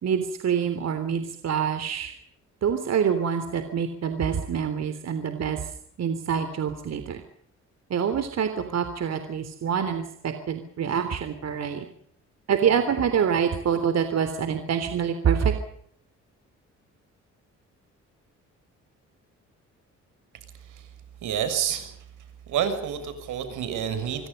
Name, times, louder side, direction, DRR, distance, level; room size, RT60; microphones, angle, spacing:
voice 1, 0.0-2.1 2.6-5.6 6.0-7.2 7.9-11.8 12.5-15.5, right 7 dB, 60° right, 9 dB, 3.4 m, -26 dB
voice 2, 21.2-21.9 22.5-24.3, right 9 dB, 80° right, 10 dB, 6.5 m, -28 dB
27.0 x 23.5 x 5.5 m, 0.67 s
cardioid pair, 90°, 30 cm